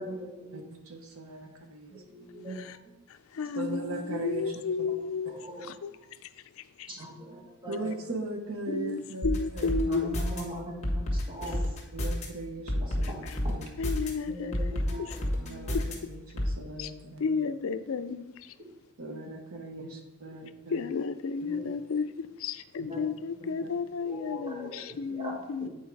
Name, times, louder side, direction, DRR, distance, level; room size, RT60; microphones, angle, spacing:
voice 1, 0.0-0.6 1.4-1.5 1.9-2.6 3.4-3.6 5.2-5.8 6.9-7.9 9.9-11.8 12.8-12.9 14.2-15.6 17.2-17.3 18.6-18.7 19.8-19.9 21.4-21.7 22.8-23.7 24.0-25.7, equal, 25° right, 1.8 m, -41 dB
voice 2, 0.5-1.9 3.5-4.9 7.7-9.8 11.9-13.7 15.4-17.4 19.0-20.9 23.4-23.7 25.6-25.7, right 2 dB, 70° right, 1.1 m, -39 dB
voice 3, 3.3-5.3 5.8-5.9 6.8-6.9 8.7-10.2 13.8-14.5 15.0-15.1 15.7-15.8 16.8-16.9 17.2-18.3 20.7-25.7, left 5 dB, 65° left, 0.4 m, -32 dB
sound 1, 9.2-10.4 10.8-12.3 12.7-14.1 14.5-15.9 16.4-16.5, left 1 dB, 30° left, 1.5 m, -29 dB
8.4 x 4.5 x 4.7 m
head